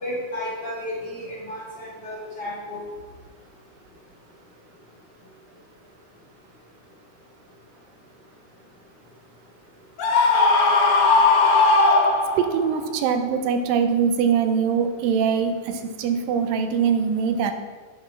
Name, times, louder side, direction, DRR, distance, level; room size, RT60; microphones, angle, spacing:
voice 1, 0.0-2.8, left 1 dB, 35° left, -5 dB, 2.2 m, -32 dB
Screaming, 10.0-12.7, left 3 dB, 60° left, 1.7 m, -18 dB
voice 2, 12.4-17.5, right 6 dB, 90° right, 7 dB, 2.4 m, -22 dB
7.9 x 6.8 x 5.8 m, 1.5 s
omnidirectional pair, 4.0 m